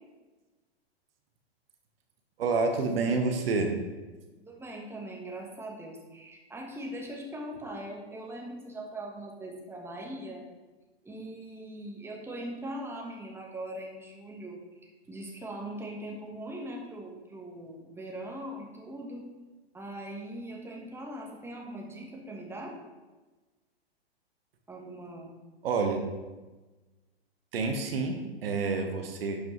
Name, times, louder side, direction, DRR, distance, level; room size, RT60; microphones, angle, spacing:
voice 1, 2.4-3.7 25.6-26.0 27.5-29.4, right 4 dB, 65° right, 4 dB, 1.2 m, -28 dB
voice 2, 4.4-10.4 11.0-14.6 15.1-19.3 19.7-22.8 24.7-25.4, right 1 dB, 10° right, -1 dB, 1.3 m, -41 dB
11.0 x 5.1 x 3.2 m, 1.2 s
hypercardioid pair, 110°, 32 cm